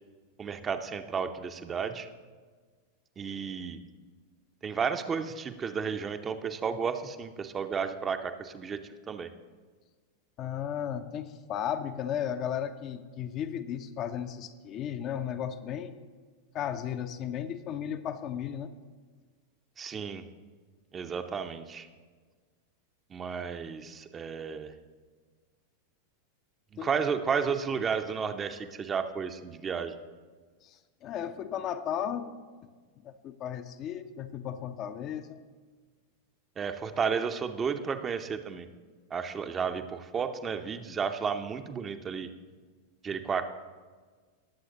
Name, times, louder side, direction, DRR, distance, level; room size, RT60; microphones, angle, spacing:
voice 1, 0.4-2.1 3.2-3.8 4.6-8.8 9.1-9.3 19.8-20.3 20.9-21.9 23.1-24.7 26.8-30.0 36.6-38.7 39.1-42.3 43.0-43.5, right 6 dB, 20° right, 8 dB, 0.6 m, -32 dB
voice 2, 10.4-16.0 16.5-18.7 26.8-26.9 30.6-32.4 33.0-35.4, left 9 dB, 35° left, 8 dB, 0.6 m, -35 dB
19.0 x 7.8 x 2.9 m, 1.5 s
figure-of-eight pair, 90°, 0 cm